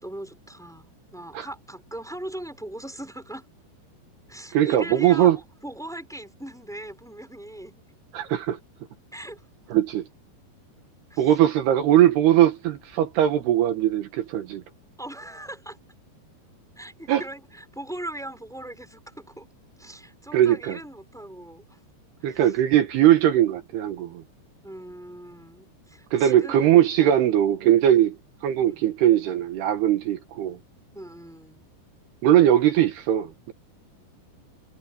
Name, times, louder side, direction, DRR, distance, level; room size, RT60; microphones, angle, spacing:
voice 1, 0.0-3.5 4.3-7.7 9.1-9.4 11.1-11.3 15.0-15.8 16.8-19.5 19.8-21.8 22.2-22.5 24.6-26.6 27.0-27.2 28.6-28.9 30.9-31.6, right 1 dB, ahead, 5.4 m, -39 dB
voice 2, 4.5-5.4 8.1-8.6 9.7-10.1 11.2-14.6 17.1-17.2 20.3-20.8 22.2-24.2 26.1-28.2 28.4-30.6 32.2-33.5, right 11 dB, 75° right, 3.3 m, -20 dB
omnidirectional pair, 4.9 m